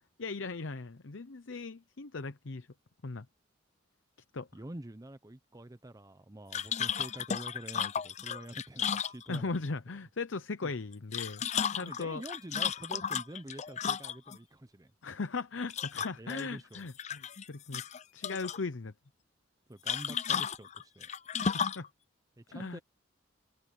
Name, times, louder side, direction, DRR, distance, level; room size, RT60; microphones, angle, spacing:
voice 1, 0.2-2.7 3.0-3.3 4.3-4.5 9.3-11.5 11.7-12.2 15.0-17.8 18.1-18.9 21.4-21.9 22.5-22.8, left 4 dB, 70° left, 0.8 m, -38 dB
voice 2, 4.5-9.6 10.6-10.7 11.8-14.9 16.2-16.9 19.7-21.1 22.4-22.8, right 1 dB, 20° right, 0.7 m, -46 dB
sound 1, 6.5-9.7 10.9-14.4 15.7-16.4 16.7-17.4 17.7-18.6 19.9-21.9, left 7 dB, 35° left, 0.6 m, -34 dB
head